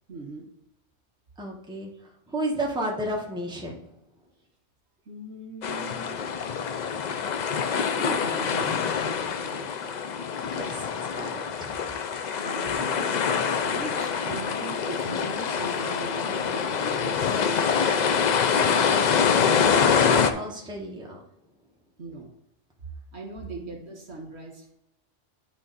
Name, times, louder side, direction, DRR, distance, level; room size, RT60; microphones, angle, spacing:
voice 1, 0.1-0.5 5.1-6.3 7.7-10.0 12.4-13.1 13.6-17.6 22.0-22.3 23.1-24.7, right 2 dB, 65° right, 0 dB, 1.9 m, -40 dB
voice 2, 1.4-1.9 2.3-3.8 10.4-10.9 11.1-11.8 20.4-21.2 23.4-23.7, right 1 dB, 5° right, -2 dB, 1.1 m, -32 dB
sound 1, 5.6-20.3, left 6 dB, 55° left, 0.5 m, -25 dB
11.0 x 3.6 x 4.1 m, 0.81 s
omnidirectional pair, 1.2 m